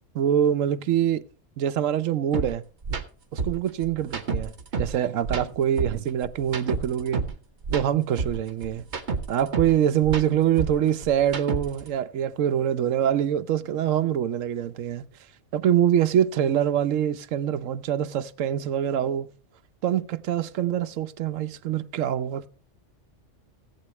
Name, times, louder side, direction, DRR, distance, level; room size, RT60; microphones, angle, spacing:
voice 1, 0.1-1.2 1.6-2.6 3.3-4.5 4.8-7.3 7.7-8.8 9.3-15.1 15.5-19.3 19.8-22.5, right 10 dB, 85° right, 1.1 m, -24 dB
sound 1, 2.3-2.5 2.8-3.0 3.4-5.0 5.2-7.4 7.6-9.8 10.0-11.9, right 4 dB, 60° right, 1.6 m, -29 dB
17.5 x 8.3 x 3.0 m
omnidirectional pair, 1.3 m